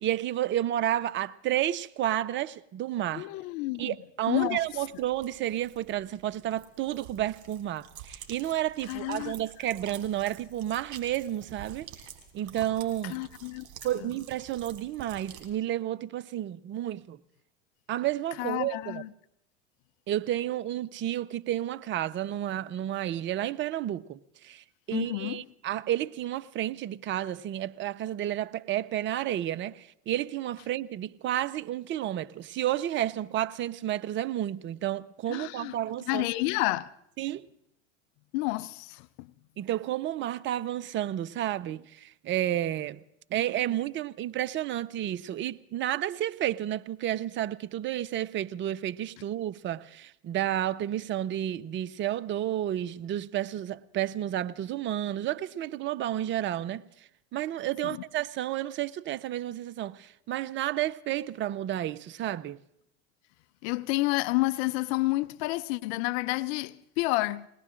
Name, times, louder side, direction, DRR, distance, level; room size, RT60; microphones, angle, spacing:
voice 1, 0.0-3.3 3.8-11.9 12.3-13.2 13.8-17.2 17.9-19.0 20.1-24.2 24.4-36.3 37.2-37.5 39.6-43.0 43.3-56.8 57.3-62.6, right 12 dB, 30° right, 0.5 m, -31 dB
voice 2, 3.1-4.0 4.3-4.6 8.9-9.3 13.0-13.7 14.0-14.1 18.4-19.1 24.9-25.5 35.3-35.7 36.1-36.9 38.3-39.3 57.8-58.0 63.6-67.5, left 20 dB, 60° left, 0.6 m, -30 dB
sound 1, 4.6-15.5, right 9 dB, 50° right, 3.6 m, -49 dB
21.0 x 18.5 x 3.7 m
hypercardioid pair, 90°, 36 cm